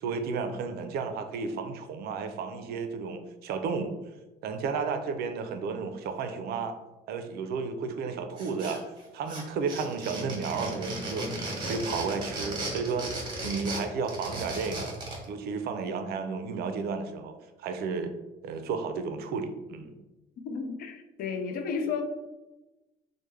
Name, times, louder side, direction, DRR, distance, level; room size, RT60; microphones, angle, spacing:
voice 1, 0.0-4.0 4.4-6.8 7.1-8.8 9.1-15.0 15.3-17.3 17.6-18.1 18.4-19.9, right 5 dB, 65° right, 7 dB, 0.4 m, -33 dB
sound 1, 8.4-9.0 9.3-15.2, right 2 dB, 25° right, 1.1 m, -35 dB
voice 2, 20.4-22.0, left 5 dB, 60° left, 5 dB, 0.5 m, -32 dB
3.2 x 2.1 x 3.2 m, 1.1 s
cardioid pair, 110°, 17 cm